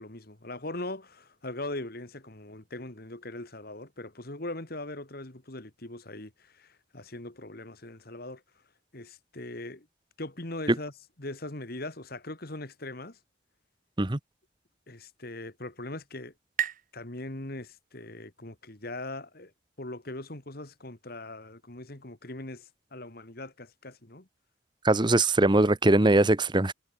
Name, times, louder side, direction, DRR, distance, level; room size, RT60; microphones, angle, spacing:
voice 1, 0.0-8.4 8.9-9.9 10.2-10.9 11.2-13.2 14.9-16.3 16.9-19.5 19.8-24.3, left 2 dB, 50° left, 2.1 m, -40 dB
sound 1, 15.1-18.5, right 9 dB, 40° right, 7.5 m, -39 dB
voice 2, 24.8-26.7, right 2 dB, 20° right, 0.9 m, -21 dB
head